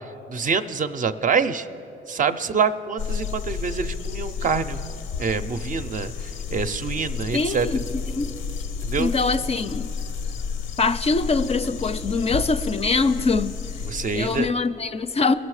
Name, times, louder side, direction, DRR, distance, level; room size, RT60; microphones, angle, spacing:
voice 1, 0.3-1.7 2.1-4.8 5.2-6.1 6.5-7.7 8.8-9.1 13.8-14.5, right 5 dB, 40° right, 10 dB, 0.5 m, -25 dB
sound 1, 3.0-14.5, left 5 dB, 90° left, 0.6 m, -31 dB
voice 2, 7.3-7.8 8.1-8.3 9.0-9.9 10.8-13.6 14.1-15.3, left 4 dB, 30° left, 11 dB, 0.4 m, -23 dB
20.5 x 6.9 x 4.8 m, 3.0 s
cardioid pair, 90°, 20 cm